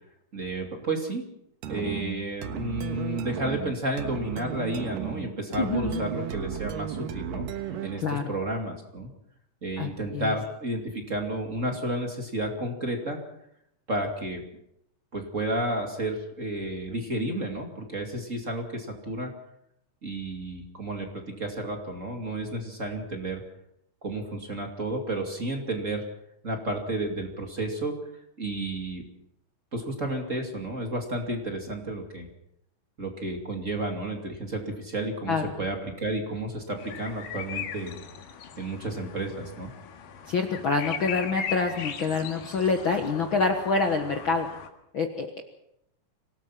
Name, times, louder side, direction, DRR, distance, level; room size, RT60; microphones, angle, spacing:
voice 1, 0.3-1.2 1.7-7.5 7.8-9.1 9.6-13.2 13.9-14.4 15.1-19.3 20.0-23.4 24.0-26.0 26.4-28.0 28.4-29.0 29.7-32.3 33.0-38.0 38.6-39.7, right 1 dB, 25° right, 3 dB, 2.5 m, -32 dB
sound 1, 1.6-8.1, right 9 dB, 85° right, 2.9 m, -34 dB
voice 2, 5.6-6.1 8.0-8.3 9.8-10.3 35.3-35.5 40.3-44.5 44.9-45.4, left 4 dB, 50° left, 4 dB, 1.7 m, -26 dB
sound 2, 36.8-44.7, left 8 dB, 80° left, 3.3 m, -39 dB
26.0 x 18.0 x 5.8 m, 0.77 s
omnidirectional pair, 3.8 m